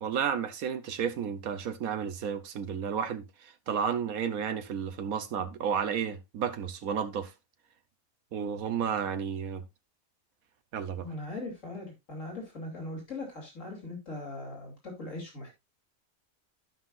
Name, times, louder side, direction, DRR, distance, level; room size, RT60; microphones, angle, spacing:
voice 1, 0.0-7.3 8.3-9.6 10.7-11.1, right 7 dB, 85° right, 1.4 m, -32 dB
voice 2, 11.0-15.6, left 2 dB, 65° left, 3.4 m, -40 dB
14.0 x 5.7 x 2.5 m
omnidirectional pair, 1.5 m